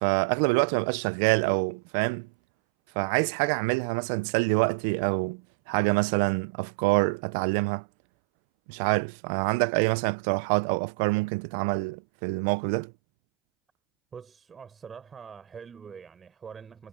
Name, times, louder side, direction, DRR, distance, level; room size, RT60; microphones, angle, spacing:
voice 1, 0.0-2.3 3.0-5.4 5.7-7.8 8.7-12.9, right 28 dB, 80° right, 0.4 m, -26 dB
voice 2, 14.1-16.9, right 6 dB, 40° right, 5.5 m, -44 dB
hypercardioid pair, 70°, 0 cm